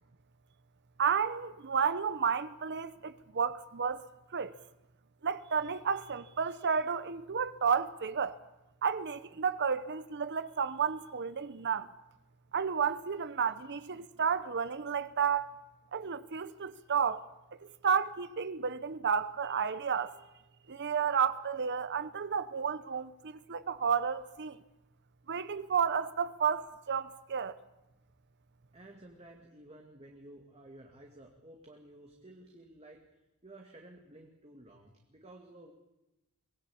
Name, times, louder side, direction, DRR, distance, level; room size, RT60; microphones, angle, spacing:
voice 1, 1.0-4.1 4.3-4.5 5.2-8.4 8.8-11.9 12.5-15.5 15.9-17.2 17.6-20.2 20.7-24.6 25.3-27.6, right 6 dB, 50° right, 0.8 m, -32 dB
voice 2, 28.7-33.1 33.4-35.7, right 1 dB, 30° right, 2.2 m, -53 dB
23.5 x 19.0 x 8.6 m
head